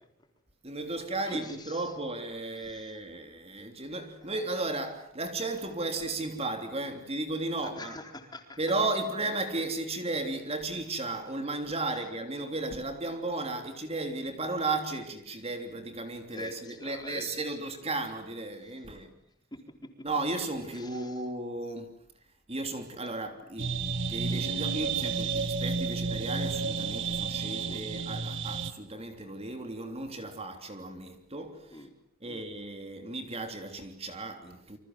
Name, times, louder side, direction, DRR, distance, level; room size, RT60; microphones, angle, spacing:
voice 1, 0.6-8.0 8.6-19.1 20.0-22.0 22.5-23.8 24.1-31.9 32.2-34.8, right 2 dB, 30° right, 3.2 m, -34 dB
voice 2, 1.3-1.8 2.6-2.9 4.3-4.4 7.6-8.6 16.3-17.3 19.5-20.1 20.7-21.1 27.7-28.0 31.7-31.9 32.3-32.4, left 2 dB, 20° left, 4.3 m, -44 dB
sound 1, 23.6-28.7, right 5 dB, 60° right, 1.6 m, -31 dB
29.0 x 26.0 x 7.8 m
head